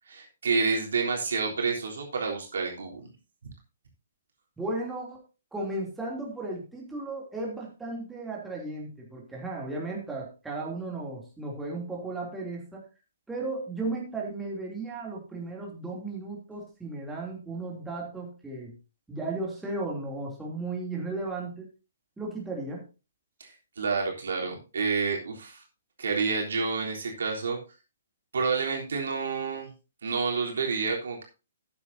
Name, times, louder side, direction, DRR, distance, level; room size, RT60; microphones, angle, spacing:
voice 1, 0.1-3.1 23.4-25.6 26.0-27.6 28.3-29.7 30.0-31.2, right 4 dB, 65° right, 0 dB, 3.6 m, -29 dB
voice 2, 4.6-5.2 5.5-12.8 13.3-18.7 19.1-21.7 22.2-22.9, right 2 dB, 5° right, -3 dB, 2.9 m, -35 dB
13.5 x 9.8 x 2.8 m, 0.31 s
figure-of-eight pair, 125°, 0 cm